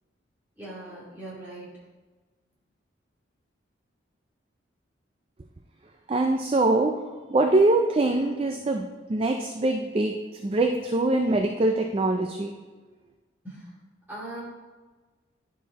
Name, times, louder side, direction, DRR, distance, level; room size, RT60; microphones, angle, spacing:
voice 1, 0.6-1.7 13.4-13.7 14.1-14.4, right 1 dB, 10° right, -8 dB, 2.5 m, -40 dB
voice 2, 6.1-7.0 7.3-12.5, right 2 dB, 30° right, 4 dB, 0.3 m, -23 dB
10.0 x 4.7 x 4.1 m, 1.3 s
head